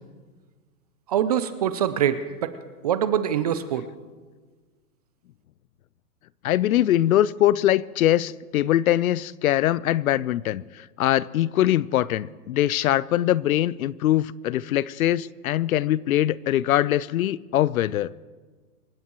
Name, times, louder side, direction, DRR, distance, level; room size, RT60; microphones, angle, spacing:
voice 1, 1.1-2.5 2.8-3.9, right 9 dB, 25° right, 0.4 m, -24 dB
voice 2, 6.4-18.1, left 13 dB, 65° left, 0.6 m, -22 dB
26.5 x 15.0 x 3.0 m
hypercardioid pair, 145°, 47 cm